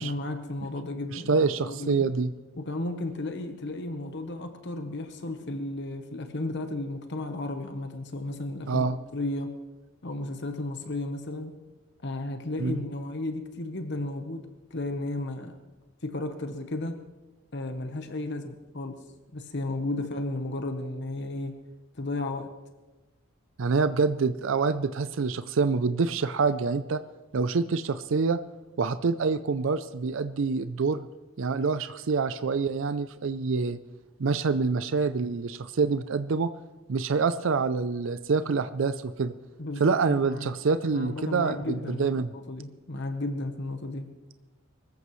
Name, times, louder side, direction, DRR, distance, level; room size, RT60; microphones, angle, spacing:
voice 1, 0.0-2.1 2.5-9.5 10.0-11.6 12.0-15.6 16.0-17.0 17.5-19.0 19.3-21.6 21.9-22.5 39.6-40.5 40.9-42.1 42.3-44.1, left 2 dB, 55° left, 7 dB, 1.0 m, -34 dB
voice 2, 1.1-2.3 8.7-9.0 12.6-12.8 23.6-27.0 27.3-28.4 28.8-31.1 31.4-33.8 34.2-36.5 36.9-39.3 39.8-42.3, right 4 dB, 65° right, 12 dB, 0.5 m, -26 dB
23.5 x 14.5 x 3.2 m, 1.1 s
head